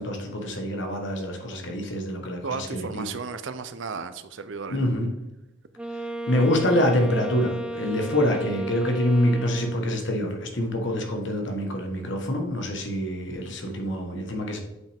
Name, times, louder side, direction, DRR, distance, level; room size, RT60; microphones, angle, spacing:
voice 1, 0.0-3.1 4.7-5.1 6.3-14.6, left 1 dB, 60° left, 3 dB, 1.2 m, -26 dB
voice 2, 2.4-4.8, right 5 dB, 65° right, 11 dB, 0.5 m, -34 dB
Wind instrument woodwind instrument, 5.8-10.1, right 1 dB, 5° right, 0.4 m, -34 dB
7.8 x 5.6 x 3.5 m, 0.97 s
head